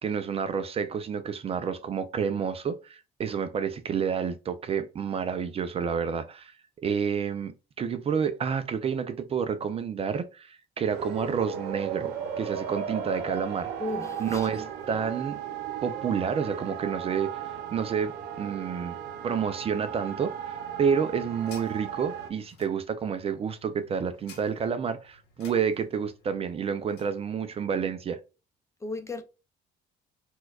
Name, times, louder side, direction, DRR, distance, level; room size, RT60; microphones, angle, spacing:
voice 1, 0.0-6.5 6.8-13.7 14.2-15.4 15.8-19.0 19.2-28.2, right 7 dB, 35° right, 0.4 m, -29 dB
Wind instrument woodwind instrument, 10.8-15.2, left 3 dB, ahead, 1.0 m, -50 dB
sound 1, 10.9-22.3, right 8 dB, 85° right, 0.6 m, -36 dB
voice 2, 13.8-14.5 28.8-29.2, left 2 dB, 15° left, 0.5 m, -35 dB
sound 2, 20.7-27.2, left 5 dB, 85° left, 1.2 m, -55 dB
4.4 x 2.2 x 2.3 m
cardioid pair, 110°, 17 cm